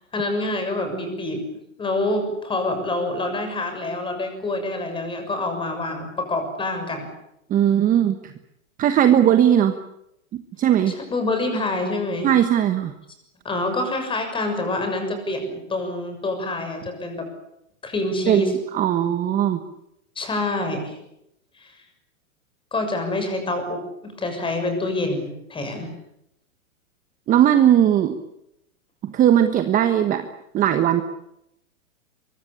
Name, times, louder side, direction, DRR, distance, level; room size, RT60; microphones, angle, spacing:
voice 1, 0.1-1.4 1.8-7.1 10.9-12.3 13.4-17.3 17.8-18.5 20.1-20.9 21.6-21.7 22.7-25.9, left 2 dB, 10° left, 6 dB, 6.8 m, -26 dB
voice 2, 7.5-8.3 8.8-9.7 10.3-10.9 12.2-12.9 18.3-19.6 27.3-28.2 29.0-30.3 30.5-31.0, right 10 dB, 20° right, 9 dB, 1.3 m, -18 dB
24.0 x 23.5 x 8.6 m, 0.80 s
hypercardioid pair, 140°, 41 cm